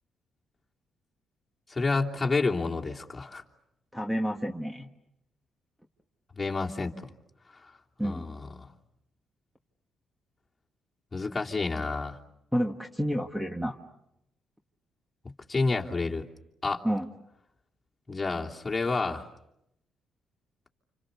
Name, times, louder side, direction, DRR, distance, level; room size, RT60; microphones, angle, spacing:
voice 1, 1.7-3.4 6.3-6.9 7.5-7.7 8.0-8.7 11.1-12.2 15.5-16.2 16.6-16.8 18.1-19.3, left 3 dB, 25° left, -1 dB, 3.1 m, -29 dB
voice 2, 3.9-4.9 8.0-8.3 12.5-13.8 16.8-17.1, equal, 5° right, 3 dB, 1.7 m, -30 dB
29.5 x 28.0 x 6.9 m, 0.82 s
cardioid pair, 90°, 0 cm